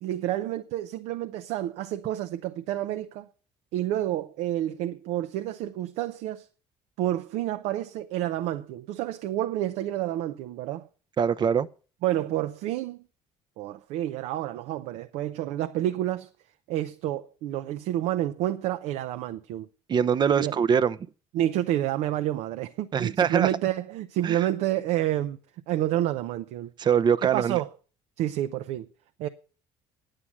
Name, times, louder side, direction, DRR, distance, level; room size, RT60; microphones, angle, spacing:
voice 1, 0.0-3.3 3.7-6.5 7.0-10.9 12.0-13.0 13.6-16.3 16.7-19.7 20.4-20.6 21.3-25.4 25.7-26.7 27.3-27.7 28.2-28.9 29.2-29.3, right 13 dB, 80° right, 0.7 m, -29 dB
voice 2, 11.2-11.7 19.9-21.0 22.9-23.5 24.2-24.4 26.8-27.6, right 7 dB, 40° right, 0.7 m, -23 dB
10.0 x 7.8 x 7.3 m
cardioid pair, 100°, 11 cm